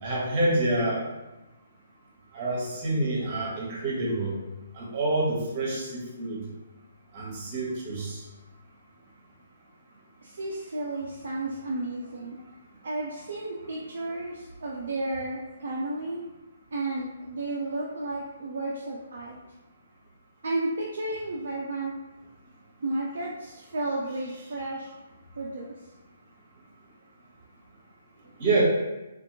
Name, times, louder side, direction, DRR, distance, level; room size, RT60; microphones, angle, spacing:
voice 1, 0.0-1.0 2.3-4.3 4.7-6.4 7.1-8.2 28.4-28.6, right 2 dB, 35° right, -4 dB, 1.0 m, -27 dB
voice 2, 10.2-12.4 12.8-16.2 16.7-19.4 20.4-21.9 22.8-24.9 25.4-25.7, right 2 dB, 55° right, -3 dB, 0.4 m, -32 dB
2.7 x 2.4 x 2.6 m, 1.0 s
figure-of-eight pair, 130°, 0 cm